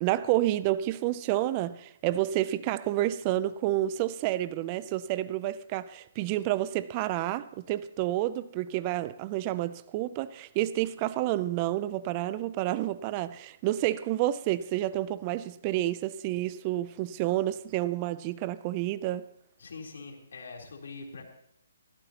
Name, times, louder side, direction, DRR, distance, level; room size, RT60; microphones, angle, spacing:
voice 1, 0.0-19.3, right 14 dB, 30° right, 0.4 m, -29 dB
voice 2, 19.6-21.2, left 4 dB, 70° left, 3.6 m, -43 dB
17.5 x 15.0 x 2.9 m
hypercardioid pair, 145°, 0 cm